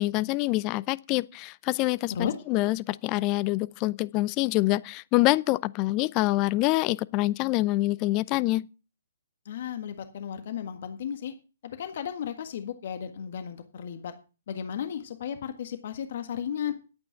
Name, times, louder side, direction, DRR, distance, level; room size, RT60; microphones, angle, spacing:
voice 1, 0.0-8.6, left 19 dB, 30° left, 0.6 m, -26 dB
voice 2, 9.4-11.3 11.6-14.1 14.5-16.7, left 8 dB, 50° left, 1.6 m, -34 dB
11.5 x 8.9 x 5.8 m
figure-of-eight pair, 130°, 0 cm